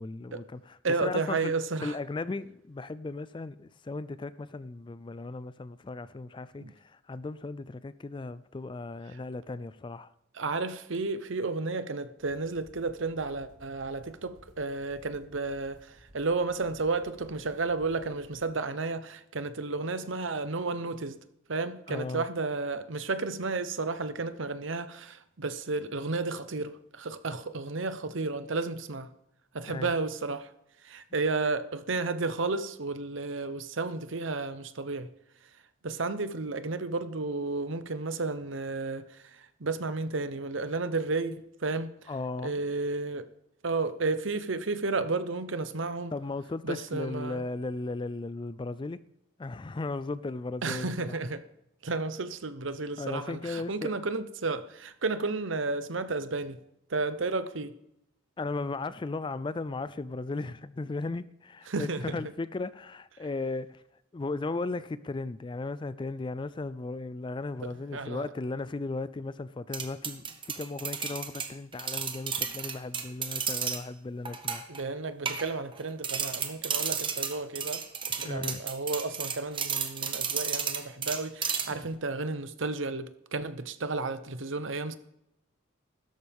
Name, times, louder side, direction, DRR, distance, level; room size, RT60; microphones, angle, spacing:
voice 1, 0.0-1.5 1.8-10.1 21.9-22.3 29.7-29.9 42.1-42.6 46.1-49.0 49.4-51.2 53.0-53.9 58.4-63.8 64.1-70.2 70.5-74.7 78.2-78.6 81.7-81.8, left 3 dB, 25° left, 0.4 m, -36 dB
voice 2, 0.8-2.0 6.6-6.7 10.3-21.2 21.5-29.1 29.5-30.5 30.8-35.1 35.8-41.9 42.4-43.3 43.6-46.1 46.6-47.4 50.6-51.4 51.8-56.6 56.9-57.7 61.7-62.2 67.9-68.3 74.7-77.8 78.2-85.0, right 3 dB, 65° right, 0.9 m, -32 dB
sound 1, 12.2-18.4, equal, 45° right, 4.1 m, -58 dB
sound 2, 69.7-73.8 74.3-74.8 75.3-75.8 76.0-81.9, right 7 dB, 25° right, 1.0 m, -33 dB
15.5 x 13.0 x 3.6 m
head